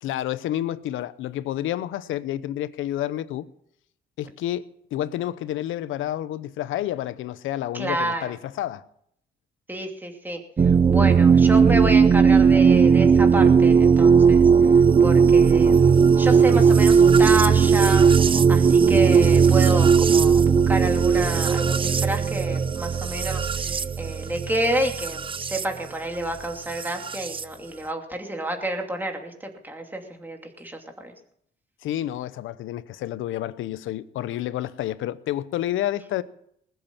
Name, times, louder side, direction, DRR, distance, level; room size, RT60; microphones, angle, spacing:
voice 1, 0.0-3.5 4.2-8.8 31.8-36.2, left 13 dB, 85° left, 0.8 m, -29 dB
voice 2, 7.7-8.3 9.7-10.4 10.9-14.4 15.0-18.0 18.5-31.1, right 1 dB, 10° right, 2.7 m, -29 dB
sound 1, 10.6-25.7 26.8-27.4, right 6 dB, 25° right, 0.5 m, -17 dB
20.0 x 8.1 x 7.3 m
cardioid pair, 90°, 20 cm